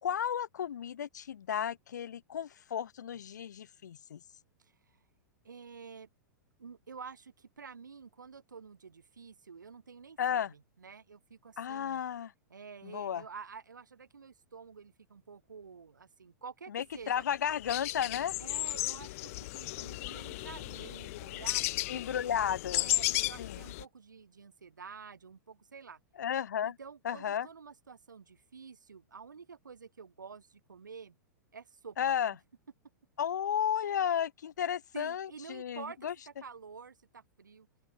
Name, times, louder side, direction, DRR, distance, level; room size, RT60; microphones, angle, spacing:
voice 1, 0.0-4.2 10.2-10.5 11.6-12.3 12.8-13.2 16.7-18.4 21.9-22.9 23.4-23.6 26.2-26.8 27.0-27.5 32.0-32.3 33.2-36.1, left 9 dB, 65° left, 1.8 m, -33 dB
voice 2, 4.6-5.0 5.4-6.1 6.6-12.0 12.5-17.2 18.4-22.3 22.8-26.0 26.6-31.2 31.5-32.2 33.8-34.0 34.9-37.7, right 5 dB, 75° right, 7.1 m, -49 dB
sound 1, 17.2-17.3 17.5-23.8, left 21 dB, 45° left, 1.9 m, -35 dB
open air
figure-of-eight pair, 100°, 10 cm